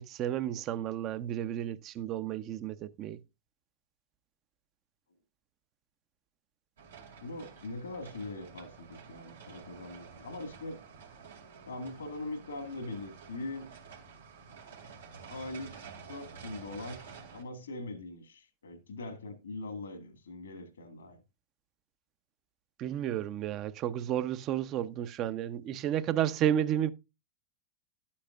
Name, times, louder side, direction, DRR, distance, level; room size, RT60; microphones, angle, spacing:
voice 1, 0.0-3.2 22.8-26.9, right 10 dB, 40° right, 0.7 m, -32 dB
sound 1, 6.8-17.4, right 6 dB, 80° right, 2.3 m, -50 dB
voice 2, 7.2-10.8 11.7-13.7 15.3-21.2, left 2 dB, 80° left, 1.9 m, -42 dB
11.5 x 8.6 x 2.5 m
hypercardioid pair, 95°, 0 cm